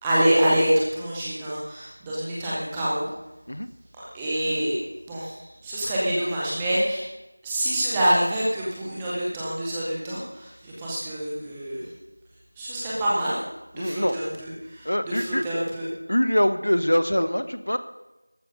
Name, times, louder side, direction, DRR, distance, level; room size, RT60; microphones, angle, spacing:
voice 1, 0.0-3.1 4.1-4.8 5.1-5.4 5.6-7.0 7.4-11.8 12.6-13.4 13.7-15.9, right 1 dB, 5° right, -7 dB, 0.8 m, -26 dB
voice 2, 13.8-14.2 14.8-15.4 16.1-17.8, equal, 70° left, 10 dB, 1.4 m, -23 dB
13.5 x 12.0 x 5.4 m, 0.99 s
figure-of-eight pair, 180°, 0 cm